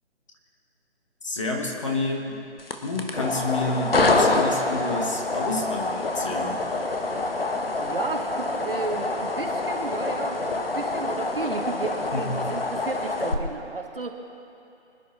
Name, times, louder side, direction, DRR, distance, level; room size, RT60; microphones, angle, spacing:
voice 1, 1.2-2.4 2.8-6.6 12.1-12.5, left 2 dB, 25° left, 0 dB, 1.4 m, -29 dB
sound 1, 2.6-13.3, left 2 dB, 55° left, 1.4 m, -26 dB
voice 2, 7.8-14.1, right 3 dB, 55° right, 3 dB, 1.7 m, -33 dB
25.5 x 10.5 x 4.3 m, 2.8 s
figure-of-eight pair, 155°, 35 cm